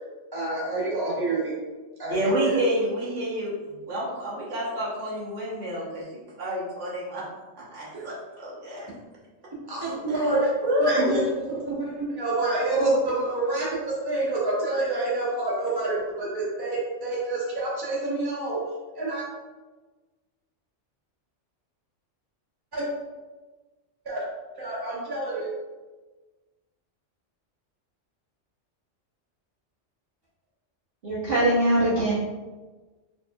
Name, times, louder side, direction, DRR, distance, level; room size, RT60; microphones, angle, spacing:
voice 1, 0.3-1.5 2.0-2.6 7.9-8.1 9.7-10.5 10.8-11.2 11.6-18.6 19.0-19.3 22.7-22.9 24.0-24.2 24.6-25.5, right 2 dB, 20° right, -7 dB, 1.1 m, -27 dB
voice 2, 2.1-3.5 3.9-7.2 7.5-8.9 10.1-10.2 10.6-11.2, equal, 75° right, -7 dB, 1.4 m, -28 dB
voice 3, 31.0-32.1, right 1 dB, 50° right, -10 dB, 1.1 m, -22 dB
4.3 x 3.1 x 2.3 m, 1.3 s
omnidirectional pair, 1.3 m